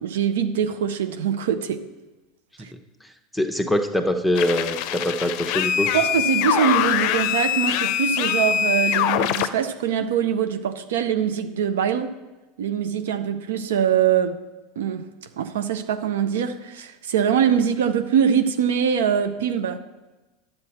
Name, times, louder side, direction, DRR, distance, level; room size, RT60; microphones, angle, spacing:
voice 1, 0.0-1.9 2.6-2.7 5.9-12.2 12.6-14.4 14.8-15.1 15.4-19.8, right 8 dB, 80° right, 0.5 m, -23 dB
voice 2, 3.0-5.9, left 1 dB, ahead, 0.9 m, -24 dB
sound 1, 4.3-9.5, left 10 dB, 60° left, 0.5 m, -23 dB
10.5 x 7.8 x 4.2 m
hypercardioid pair, 95°, 0 cm